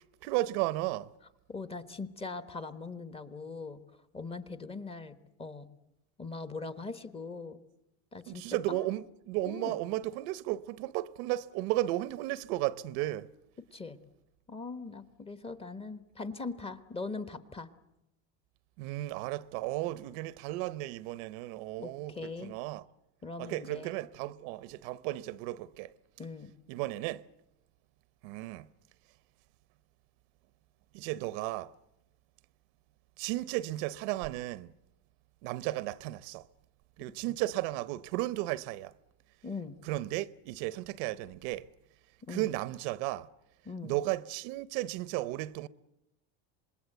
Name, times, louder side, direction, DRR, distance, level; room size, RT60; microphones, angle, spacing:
voice 1, 0.2-1.1 8.3-13.3 18.8-22.9 23.4-25.9 26.7-27.2 28.2-28.7 30.9-31.7 33.2-34.7 35.4-36.5 37.0-38.9 39.9-41.7 42.3-43.3 43.8-45.7, right 17 dB, 75° right, 0.8 m, -34 dB
voice 2, 1.5-3.8 4.1-5.7 6.2-7.6 8.1-8.9 9.5-9.8 13.7-14.0 14.5-17.7 21.8-22.5 23.2-23.9 26.2-26.5 39.4-39.8 42.3-42.5 43.6-44.0, left 4 dB, 15° left, 1.2 m, -41 dB
26.0 x 21.0 x 8.0 m
cardioid pair, 145°, 34 cm